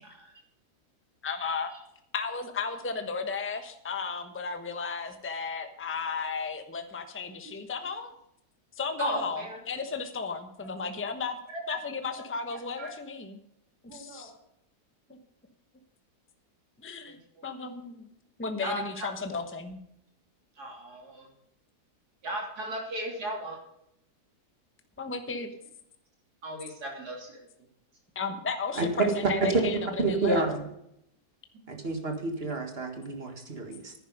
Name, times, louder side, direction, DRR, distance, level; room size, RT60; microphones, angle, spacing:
voice 1, 1.2-1.7 2.1-8.1 8.7-11.4 11.7-13.4 13.9-14.3 16.8-17.2 17.4-18.1 18.4-19.8 25.0-25.5 28.1-30.5, left 5 dB, 10° left, 7 dB, 0.9 m, -34 dB
voice 2, 9.0-9.6 11.5-11.8 12.8-12.9 13.9-14.4 17.1-17.2 18.6-19.1 20.6-21.3 22.2-23.6 26.4-27.5, right 1 dB, 70° right, 1 dB, 3.6 m, -36 dB
voice 3, 30.0-30.7 31.7-33.9, right 3 dB, 35° right, 5 dB, 1.9 m, -30 dB
10.5 x 10.0 x 5.3 m, 0.76 s
omnidirectional pair, 1.8 m